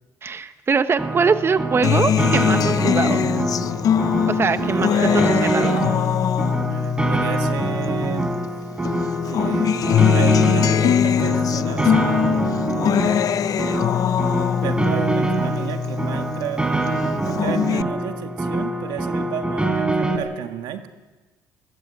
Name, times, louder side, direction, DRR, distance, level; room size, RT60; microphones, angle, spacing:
voice 1, 0.2-3.2 4.3-4.9 5.4-5.8, right 5 dB, 35° right, 11 dB, 1.0 m, -22 dB
Piano, 1.0-20.2, right 2 dB, 15° right, 4.2 m, -25 dB
Acoustic guitar, 1.8-8.5 8.8-16.5 16.9-17.8, left 9 dB, 55° left, 0.6 m, -22 dB
voice 2, 4.6-5.3 6.7-8.3 9.3-12.6 14.6-16.7 17.3-20.9, right 10 dB, 90° right, 6 dB, 1.9 m, -33 dB
21.5 x 19.0 x 8.6 m, 1.3 s
cardioid pair, 90°, 7 cm